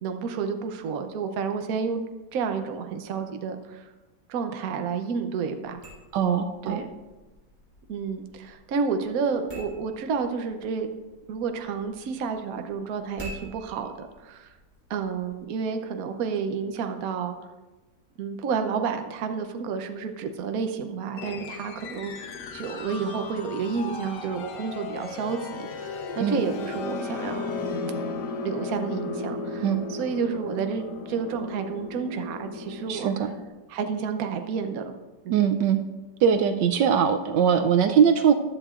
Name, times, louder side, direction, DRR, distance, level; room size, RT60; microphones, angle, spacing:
voice 1, 0.0-2.0 2.3-3.9 4.3-5.8 6.6-6.9 7.9-10.9 11.3-14.5 14.9-17.3 18.2-27.5 28.4-33.3 33.7-34.9 35.2-35.4, right 5 dB, 60° right, 7 dB, 1.1 m, -30 dB
sound 1, 5.7-15.4, right 1 dB, 10° right, 4.1 m, -49 dB
voice 2, 6.1-6.8 26.2-26.4 29.6-29.8 32.9-33.3 35.3-35.8 36.2-38.3, right 7 dB, 80° right, 7 dB, 1.3 m, -21 dB
sound 2, 21.2-33.5, left 3 dB, 70° left, 1.4 m, -35 dB
14.5 x 11.0 x 2.5 m, 1.2 s
omnidirectional pair, 1.9 m